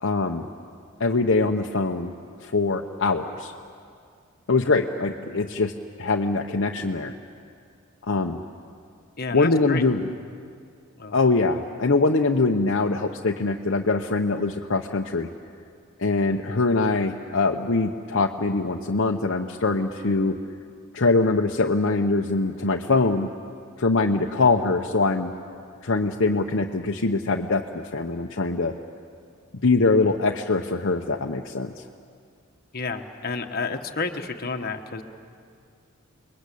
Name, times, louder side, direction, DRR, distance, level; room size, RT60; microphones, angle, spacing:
voice 1, 0.0-0.5 1.0-2.1 2.4-3.5 4.5-5.7 6.0-7.2 8.1-8.4 9.3-10.1 11.1-15.3 16.0-20.4 20.9-23.3 23.8-25.3 25.8-28.7 29.6-31.7, left 3 dB, 60° left, 2 dB, 0.9 m, -23 dB
voice 2, 9.2-9.8 11.0-11.2 32.7-35.0, left 4 dB, 45° left, 5 dB, 1.4 m, -30 dB
29.5 x 21.5 x 8.5 m, 2.3 s
head